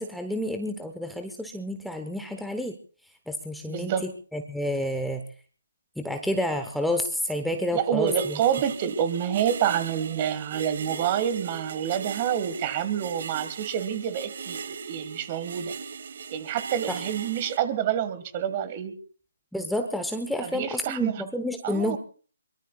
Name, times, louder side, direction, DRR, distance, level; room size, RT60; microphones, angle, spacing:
voice 1, 0.0-2.7 3.3-5.2 6.0-8.4 16.9-17.0 19.5-22.0, left 1 dB, ahead, 5 dB, 1.1 m, -29 dB
voice 2, 3.7-4.1 7.7-15.7 16.3-19.0 20.4-21.2 21.6-22.0, right 9 dB, 30° right, 13 dB, 1.8 m, -28 dB
sound 1, 8.1-17.6, right 6 dB, 50° right, 1.4 m, -39 dB
23.5 x 22.5 x 2.4 m, 0.40 s
figure-of-eight pair, 145°, 0 cm